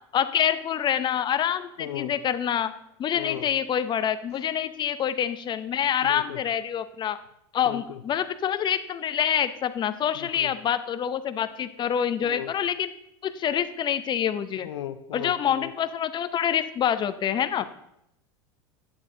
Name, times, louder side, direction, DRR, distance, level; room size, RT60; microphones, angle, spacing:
voice 1, 0.1-2.7 3.0-7.2 7.5-12.9 13.2-14.7 15.1-17.6, left 9 dB, 35° left, 13 dB, 0.7 m, -26 dB
voice 2, 1.8-2.1 3.2-3.5 6.0-6.4 7.7-8.0 10.1-10.5 12.2-12.5 14.6-15.7, left 11 dB, 80° left, 12 dB, 0.6 m, -36 dB
8.8 x 8.7 x 3.8 m, 0.79 s
hypercardioid pair, 90°, 14 cm